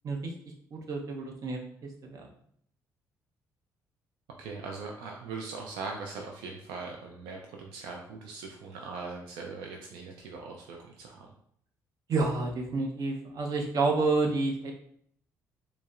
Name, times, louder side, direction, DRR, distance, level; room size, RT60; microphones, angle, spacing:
voice 1, 0.7-2.3 12.1-14.7, right 3 dB, 55° right, 1 dB, 0.8 m, -29 dB
voice 2, 4.4-11.3, right 4 dB, 85° right, 1 dB, 0.4 m, -40 dB
4.9 x 2.0 x 2.4 m, 0.67 s
supercardioid pair, 70°, 7 cm